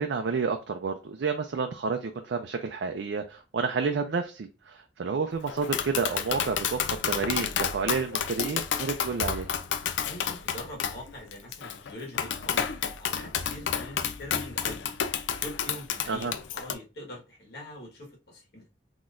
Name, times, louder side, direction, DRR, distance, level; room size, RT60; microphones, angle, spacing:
voice 1, 0.0-9.5 16.1-16.3, right 5 dB, 75° right, 0.4 m, -30 dB
Tap, 5.5-16.7, left 8 dB, 85° left, 0.4 m, -31 dB
voice 2, 10.1-12.7 13.0-14.9 15.4-18.7, left 1 dB, 60° left, 1.5 m, -43 dB
4.0 x 2.9 x 2.5 m
head